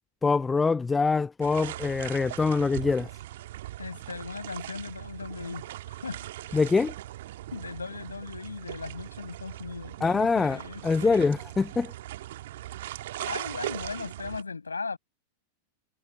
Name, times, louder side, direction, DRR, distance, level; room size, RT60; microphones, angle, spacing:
voice 1, 0.2-3.1 6.5-6.9 10.0-11.9, left 4 dB, 15° left, 0.4 m, -24 dB
sound 1, 1.4-14.4, right 14 dB, 55° right, 2.1 m, -40 dB
voice 2, 3.8-6.6 7.5-11.2 13.2-15.0, left 4 dB, 75° left, 6.7 m, -38 dB
figure-of-eight pair, 90°, 0 cm